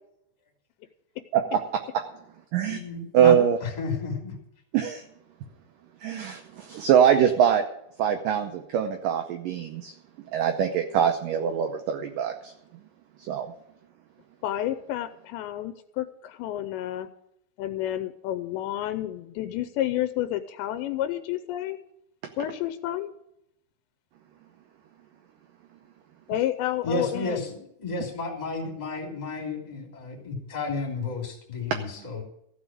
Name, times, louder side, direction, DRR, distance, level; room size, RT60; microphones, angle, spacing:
voice 1, 2.6-4.3 26.8-32.2, left 3 dB, 15° left, 1 dB, 2.0 m, -32 dB
voice 2, 3.1-3.6 4.7-5.0 6.0-7.6 8.0-9.9 10.3-12.5 13.2-13.5, right 9 dB, 90° right, 6 dB, 1.9 m, -23 dB
voice 3, 14.4-17.1 17.6-21.8 22.4-23.1 26.3-27.5, left 13 dB, 85° left, 10 dB, 3.0 m, -30 dB
15.0 x 6.3 x 8.7 m, 0.77 s
omnidirectional pair, 5.1 m